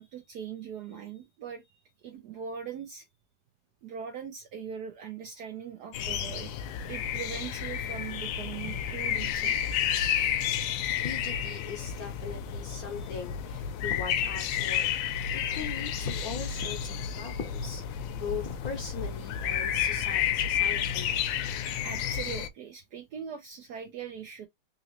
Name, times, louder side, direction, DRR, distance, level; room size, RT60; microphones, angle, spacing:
voice 1, 0.0-3.0 3.8-6.5 6.9-9.5 9.9-10.0 12.7-13.2 21.8-24.5, right 7 dB, 70° right, 1.0 m, -41 dB
sound 1, 5.9-22.5, left 9 dB, 75° left, 1.3 m, -31 dB
voice 2, 11.0-21.2, left 5 dB, 60° left, 1.1 m, -40 dB
3.8 x 3.0 x 2.9 m
omnidirectional pair, 2.3 m